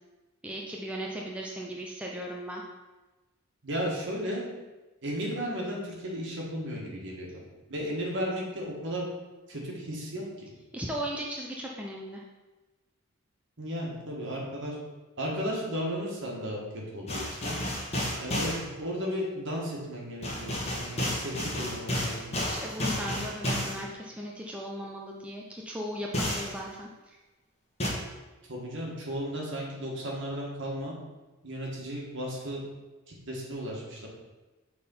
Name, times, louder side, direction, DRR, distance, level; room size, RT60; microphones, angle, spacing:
voice 1, 0.4-2.6 10.7-12.2 22.5-27.2, equal, 5° right, -2 dB, 0.5 m, -37 dB
voice 2, 3.6-4.5 5.0-7.4 7.7-9.0 9.5-10.5 13.6-14.8 15.2-17.6 18.2-22.5 28.5-30.9 31.4-32.6 33.3-34.1, equal, 55° right, -3 dB, 1.8 m, -34 dB
sound 1, 17.1-18.6 20.2-23.8 26.1-26.5 27.8-27.9, left 1 dB, 30° left, 1.3 m, -31 dB
6.6 x 3.8 x 5.5 m, 1.2 s
head